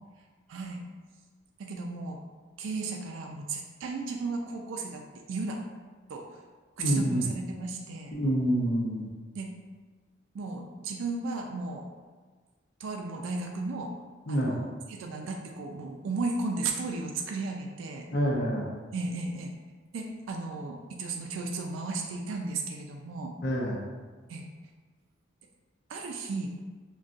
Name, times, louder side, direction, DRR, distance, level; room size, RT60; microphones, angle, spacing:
voice 1, 0.5-0.8 1.6-2.2 2.6-5.0 5.3-5.6 6.1-6.2 6.8-8.2 9.3-9.5 10.3-11.9 12.8-13.9 14.3-18.1 18.9-19.5 19.9-23.3 24.3-24.4 25.9-26.5, right 3 dB, 85° right, 2 dB, 0.3 m, -34 dB
voice 2, 6.8-7.3 8.1-9.1 14.3-14.6 18.1-18.7 23.4-23.8, equal, 60° left, -1 dB, 0.6 m, -27 dB
2.5 x 2.2 x 3.7 m, 1.4 s
head